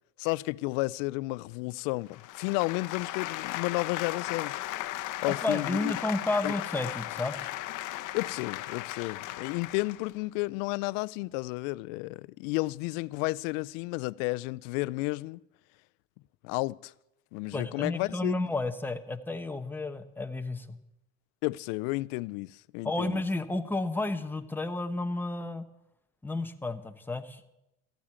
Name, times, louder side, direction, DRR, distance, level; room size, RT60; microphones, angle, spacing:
voice 1, 0.2-4.5 5.0-5.9 6.4-6.5 8.1-15.4 16.4-16.9 17.3-18.3 21.4-23.2, left 23 dB, 80° left, 0.5 m, -32 dB
sound 1, 2.1-10.1, left 15 dB, 55° left, 0.9 m, -36 dB
voice 2, 5.4-7.4 17.5-20.7 22.8-25.6 26.2-27.4, left 2 dB, 5° left, 0.9 m, -31 dB
14.5 x 8.7 x 8.7 m
cardioid pair, 125°, 38 cm